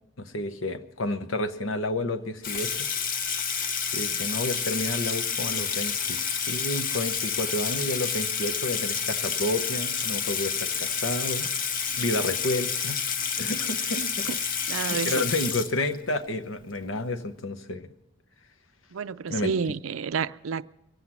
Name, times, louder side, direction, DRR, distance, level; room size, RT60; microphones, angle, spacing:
voice 1, 0.2-2.8 3.9-11.5 12.0-13.0 13.4-14.3 14.8-17.9 19.3-19.5, left 1 dB, 75° left, 0.9 m, -30 dB
Water tap faucet / Sink (filling or washing), 2.4-16.2, left 6 dB, 45° left, 0.7 m, -29 dB
voice 2, 14.7-15.3 18.9-20.6, right 6 dB, 80° right, 0.4 m, -30 dB
23.0 x 8.0 x 7.3 m
head